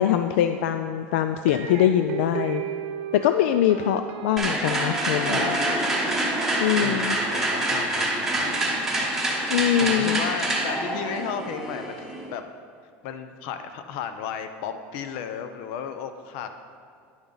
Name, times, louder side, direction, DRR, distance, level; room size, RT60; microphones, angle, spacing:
voice 1, 0.0-2.6 3.1-5.6 6.6-7.2 9.5-10.2, left 10 dB, 85° left, 8 dB, 0.3 m, -23 dB
sound 1, 1.5-8.6, right 5 dB, 55° right, 0.9 m, -36 dB
sound 2, 4.4-12.3, right 1 dB, 5° right, 1.0 m, -26 dB
voice 2, 6.8-8.6 9.8-12.4 13.0-16.5, left 7 dB, 65° left, 8 dB, 0.7 m, -34 dB
10.5 x 7.0 x 3.9 m, 2.2 s
supercardioid pair, 150°, 6 cm